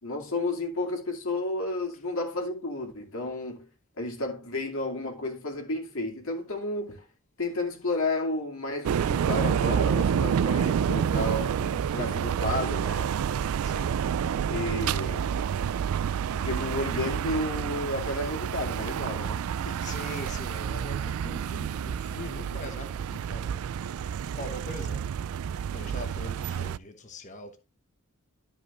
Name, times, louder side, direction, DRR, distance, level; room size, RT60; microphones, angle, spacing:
voice 1, 0.0-3.7 4.0-7.0 7.4-13.1 14.5-15.3 16.3-19.8, left 2 dB, 70° left, 2.5 m, -32 dB
sound 1, 8.8-26.8, right 8 dB, 80° right, 0.3 m, -29 dB
voice 2, 13.6-14.0 19.8-25.1 25.7-27.6, left 1 dB, 35° left, 1.1 m, -42 dB
12.0 x 5.4 x 3.0 m
head